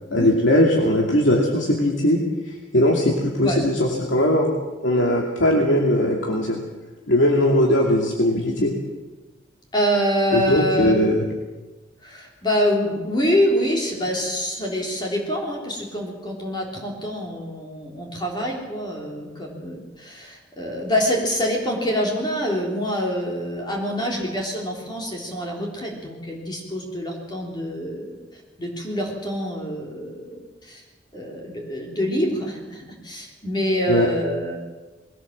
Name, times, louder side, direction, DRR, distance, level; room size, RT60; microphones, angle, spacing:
voice 1, 0.1-2.2 2.7-4.5 4.8-6.6 7.1-8.8 10.3-11.2 33.9-34.1, left 1 dB, 80° left, -1 dB, 2.6 m, -19 dB
voice 2, 9.7-11.0 12.0-30.8 31.1-34.6, equal, 25° left, -1 dB, 3.5 m, -26 dB
21.5 x 17.5 x 7.5 m, 1.2 s
head